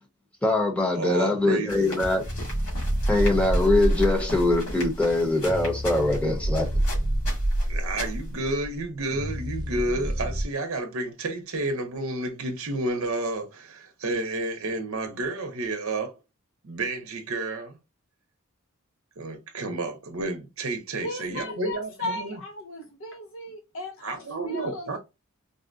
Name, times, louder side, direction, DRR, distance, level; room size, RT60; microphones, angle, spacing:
voice 1, 0.4-2.2 3.1-6.7, left 2 dB, 5° left, 0.8 m, -23 dB
voice 2, 0.9-1.9 7.7-16.1 16.6-17.8 19.2-22.4 24.0-25.0, right 2 dB, 65° right, 0.7 m, -31 dB
sound 1, 1.7-8.4, left 1 dB, 90° left, 1.9 m, -38 dB
sound 2, 2.2-10.5, right 1 dB, 20° right, 0.5 m, -28 dB
voice 3, 21.0-25.0, left 1 dB, 60° left, 0.5 m, -36 dB
3.9 x 2.1 x 2.5 m
head